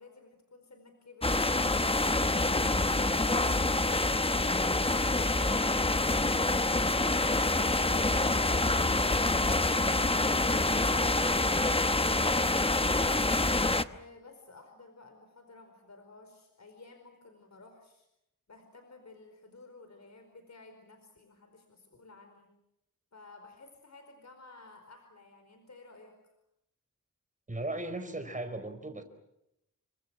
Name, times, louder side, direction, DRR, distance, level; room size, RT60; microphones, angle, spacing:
voice 1, 0.0-2.6 13.9-18.1 18.5-22.5 23.1-26.2, left 3 dB, 55° left, 5 dB, 4.7 m, -54 dB
sound 1, 1.2-13.8, left 2 dB, 15° left, 0.9 m, -26 dB
voice 2, 27.5-29.0, right 2 dB, 25° right, 8 dB, 4.5 m, -37 dB
29.5 x 25.5 x 6.3 m, 0.84 s
wide cardioid pair, 110°, 33 cm